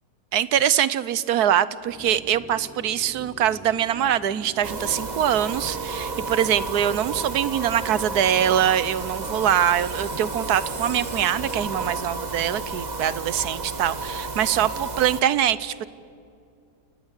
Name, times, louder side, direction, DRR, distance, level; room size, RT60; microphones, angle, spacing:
voice 1, 0.3-15.9, right 10 dB, 75° right, 17 dB, 1.3 m, -23 dB
sound 1, 1.8-12.2, right 1 dB, 5° right, 1.4 m, -45 dB
sound 2, 4.6-15.2, right 3 dB, 30° right, 1.0 m, -32 dB
28.5 x 19.5 x 8.2 m, 2.3 s
omnidirectional pair, 1.7 m